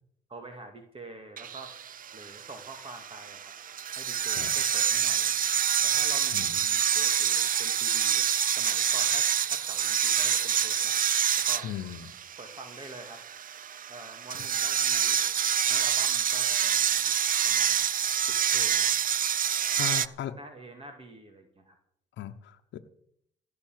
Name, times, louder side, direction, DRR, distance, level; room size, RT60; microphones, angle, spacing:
voice 1, 0.3-1.7 2.1-3.5 3.9-5.4 5.8-8.3 8.5-11.0 11.4-11.7 12.4-13.2 13.9-15.3 15.6-18.9 19.8-21.8, right 2 dB, 30° right, 4 dB, 2.2 m, -46 dB
sound 1, 1.4-20.1, right 8 dB, 50° right, 0.6 m, -27 dB
voice 2, 11.6-12.2 19.8-20.3 22.2-22.8, left 10 dB, 90° left, 5 dB, 1.0 m, -37 dB
16.5 x 7.0 x 9.1 m, 0.70 s
cardioid pair, 105°, 18 cm